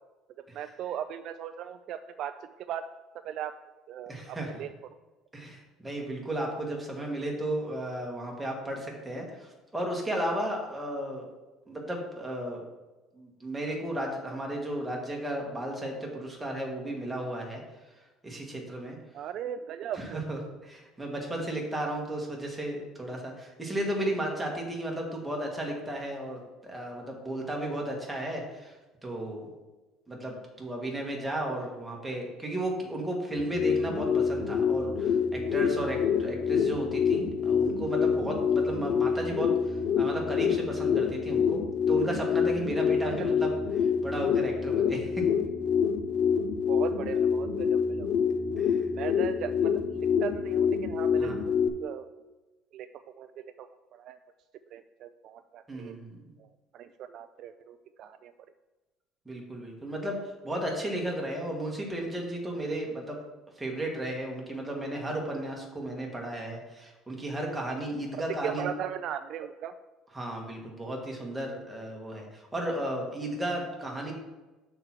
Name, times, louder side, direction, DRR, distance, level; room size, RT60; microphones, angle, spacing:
voice 1, 0.4-2.8 3.2-3.5 3.9-4.7 19.1-20.2 31.2-31.7 46.7-48.1 49.0-51.3 51.8-52.1 52.7-52.9 53.2-54.2 54.7-56.0 56.4-56.5 56.7-58.3 68.3-69.7, right 9 dB, 50° right, 10 dB, 0.3 m, -38 dB
voice 2, 4.1-4.5 5.3-11.3 11.7-12.6 13.1-17.6 18.2-19.0 19.9-28.7 29.0-29.5 30.1-41.6 41.9-43.5 44.0-45.2 48.6-48.8 51.1-51.4 55.7-56.3 59.2-63.2 63.6-68.7 70.1-74.1, right 1 dB, 10° right, -1 dB, 1.5 m, -34 dB
sound 1, 33.3-51.7, left 6 dB, 40° left, 0.5 m, -27 dB
6.5 x 4.5 x 6.0 m, 1.1 s
cardioid pair, 145°, 0 cm